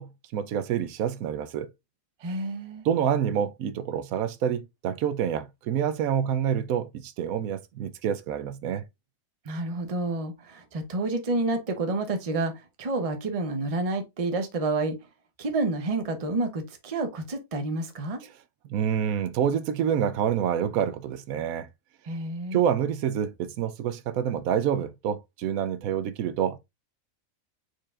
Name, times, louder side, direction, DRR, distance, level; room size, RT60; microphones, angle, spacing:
voice 1, 0.0-1.7 2.8-8.8 18.7-21.7 22.5-26.6, right 9 dB, 80° right, 1.0 m, -27 dB
voice 2, 2.2-2.9 9.4-15.0 15.4-18.2 22.0-22.6, right 2 dB, 30° right, 0.7 m, -29 dB
4.8 x 4.5 x 2.4 m
omnidirectional pair, 1.5 m